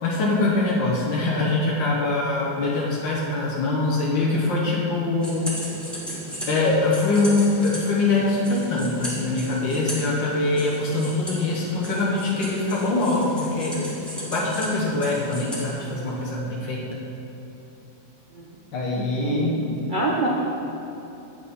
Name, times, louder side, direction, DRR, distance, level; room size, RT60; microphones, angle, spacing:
voice 1, 0.0-5.5 6.5-13.8 14.2-17.0 18.7-19.6, left 2 dB, 85° left, -4 dB, 1.8 m, -23 dB
sound 1, 5.2-16.4, equal, ahead, 1.4 m, -36 dB
voice 2, 19.2-20.3, right 3 dB, 60° right, -4 dB, 0.5 m, -26 dB
8.9 x 5.6 x 5.3 m, 3.0 s
omnidirectional pair, 2.0 m